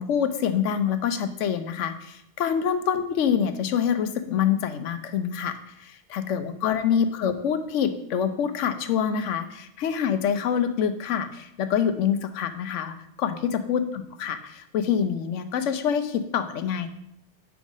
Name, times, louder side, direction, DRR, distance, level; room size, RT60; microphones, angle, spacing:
voice 1, 0.0-16.9, left 8 dB, 85° left, 10 dB, 1.0 m, -26 dB
6.1 x 4.9 x 5.4 m, 0.76 s
omnidirectional pair, 1.2 m